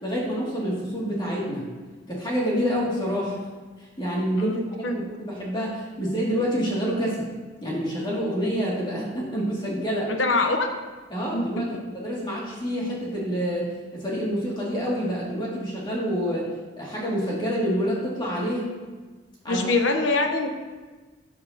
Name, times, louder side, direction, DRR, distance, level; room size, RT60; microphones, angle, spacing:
voice 1, 0.0-1.7 2.1-3.5 3.8-4.6 4.9-7.3 7.6-10.1 11.1-16.5 16.8-18.7 19.4-19.7, equal, 25° left, -5 dB, 2.3 m, -27 dB
voice 2, 4.4-4.9 10.1-10.7 11.3-11.7 19.5-20.5, left 3 dB, 85° left, 4 dB, 0.9 m, -24 dB
13.0 x 7.7 x 2.8 m, 1.3 s
head